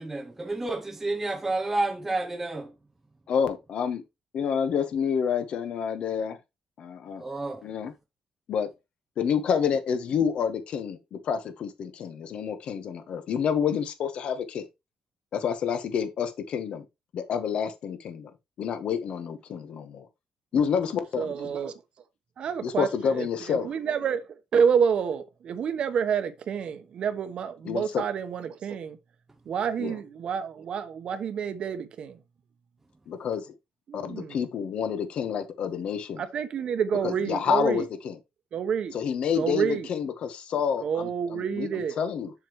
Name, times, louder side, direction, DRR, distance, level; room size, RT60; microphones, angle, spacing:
voice 1, 0.0-2.7 7.2-7.6, right 2 dB, 10° right, 0.7 m, -30 dB
voice 2, 3.3-4.0 4.3-6.4 6.8-7.2 7.6-7.9 8.5-8.7 9.2-14.6 15.3-16.8 17.1-18.3 18.6-20.1 20.5-21.5 22.6-23.7 27.6-28.0 29.8-29.9 33.1-33.5 33.9-36.2 37.0-38.2 38.9-42.3, left 7 dB, 60° left, 1.3 m, -28 dB
voice 3, 21.2-21.7 22.4-24.2 24.5-29.0 29.5-32.2 33.9-34.4 36.2-37.9 38.5-39.0 39.3-39.9 40.8-42.0, right 7 dB, 55° right, 1.1 m, -28 dB
7.2 x 7.1 x 3.2 m
cardioid pair, 140°, 2 cm